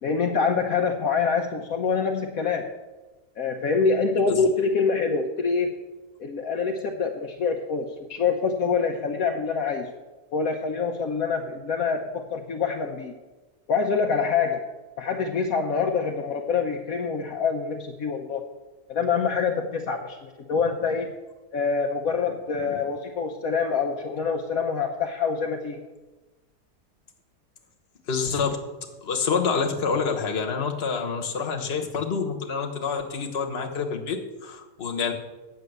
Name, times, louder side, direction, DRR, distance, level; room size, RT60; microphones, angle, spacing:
voice 1, 0.0-2.7 3.4-5.8 6.2-9.9 10.3-13.1 13.7-14.6 15.0-18.4 18.9-21.1 21.5-25.8, left 5 dB, 65° left, 3 dB, 1.2 m, -25 dB
voice 2, 28.1-28.6 29.0-35.1, left 5 dB, 40° left, 3 dB, 1.4 m, -27 dB
9.3 x 6.7 x 7.9 m, 1.2 s
omnidirectional pair, 1.7 m